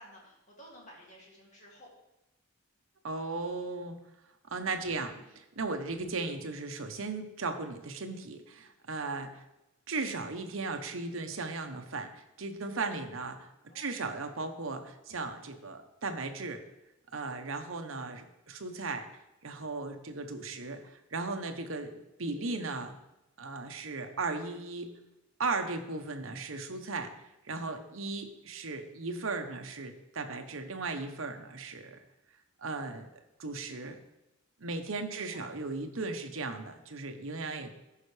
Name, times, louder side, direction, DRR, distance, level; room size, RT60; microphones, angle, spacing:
voice 1, 0.0-1.9 4.8-5.3 13.7-14.0 22.3-22.7 35.1-35.4, equal, 35° left, -2 dB, 2.3 m, -55 dB
voice 2, 3.0-4.0 4.5-9.4 9.9-13.5 13.7-16.6 17.1-19.1 19.4-23.0 23.4-24.9 25.4-27.1 27.5-32.0 32.6-33.1 33.4-34.0 34.6-37.7, right 3 dB, 75° right, 6 dB, 1.0 m, -36 dB
14.0 x 5.7 x 3.3 m, 0.95 s
head